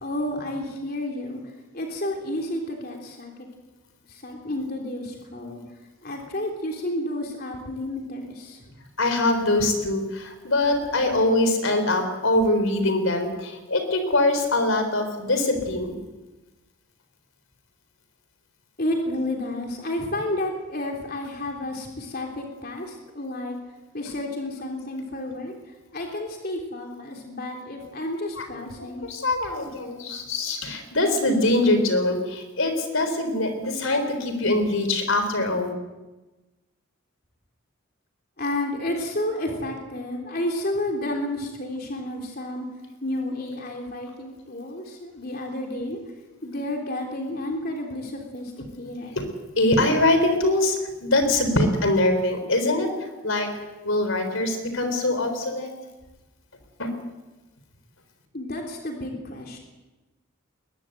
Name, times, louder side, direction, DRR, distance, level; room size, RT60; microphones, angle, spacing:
voice 1, 0.0-3.3 4.1-5.6 6.0-8.7 18.8-23.6 23.9-25.5 25.9-29.0 38.4-42.7 43.0-46.0 46.4-49.2 58.3-59.6, left 1 dB, 45° left, 1 dB, 3.3 m, -31 dB
voice 2, 9.0-16.0 28.4-28.5 28.8-35.7 49.2-49.3 49.6-53.5 53.8-55.7 56.8-56.9, left 2 dB, 75° left, 7 dB, 4.0 m, -23 dB
21.5 x 21.0 x 7.9 m, 1.1 s
head